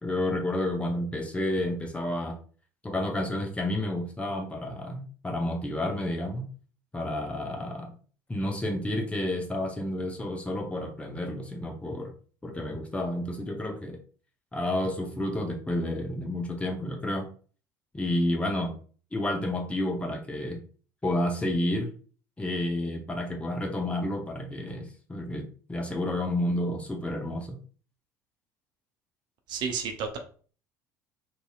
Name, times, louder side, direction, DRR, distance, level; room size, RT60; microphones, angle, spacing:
voice 1, 0.0-2.4 2.8-6.5 6.9-7.9 8.3-12.1 12.4-14.0 14.5-17.3 17.9-18.8 19.1-20.6 21.0-21.9 22.4-27.6, left 1 dB, 10° left, 2 dB, 0.7 m, -30 dB
voice 2, 29.5-30.2, right 6 dB, 50° right, 4 dB, 0.6 m, -31 dB
2.8 x 2.7 x 2.3 m, 0.42 s
figure-of-eight pair, 65°, 10 cm